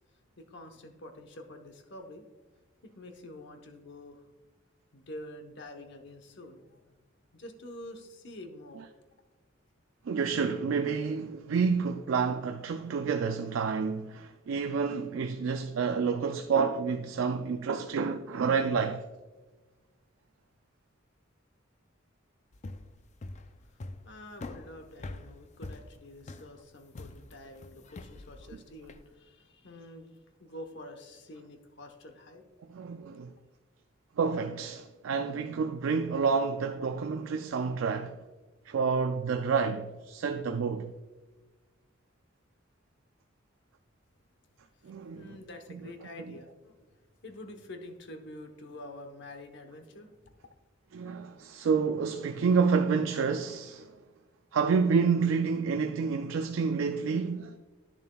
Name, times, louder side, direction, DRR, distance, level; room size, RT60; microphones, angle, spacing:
voice 1, 0.1-2.3 2.8-4.3 4.9-7.0 7.3-8.9 23.7-32.5 44.7-50.5, left 1 dB, 60° left, 1.0 m, -47 dB
voice 2, 10.1-19.0 32.7-33.3 34.2-38.2 38.7-40.9 44.8-45.4 50.9-53.9 54.5-57.5, right 5 dB, 90° right, 0.4 m, -29 dB
sound 1, 22.5-29.1, left 2 dB, 35° left, 0.4 m, -44 dB
10.5 x 6.9 x 2.3 m
head